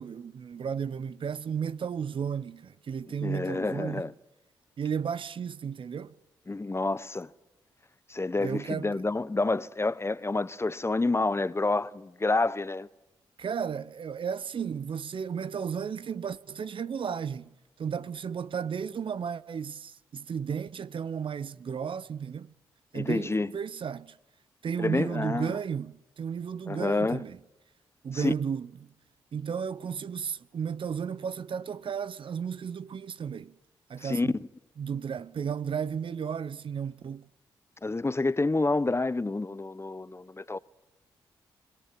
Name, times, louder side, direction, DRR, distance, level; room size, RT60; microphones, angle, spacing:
voice 1, 0.0-4.0 4.8-6.1 8.4-9.0 13.4-17.5 17.8-22.5 22.9-24.2 24.6-27.4 28.0-28.9 29.3-33.5 33.9-34.4 34.8-37.2, right 7 dB, 55° right, 0.9 m, -34 dB
voice 2, 3.2-4.1 6.5-7.3 8.1-12.9 22.9-23.5 24.8-25.5 26.7-27.2 28.1-28.3 34.0-34.3 37.8-40.6, left 3 dB, 25° left, 1.0 m, -28 dB
26.0 x 18.5 x 7.6 m
hypercardioid pair, 40°, 10 cm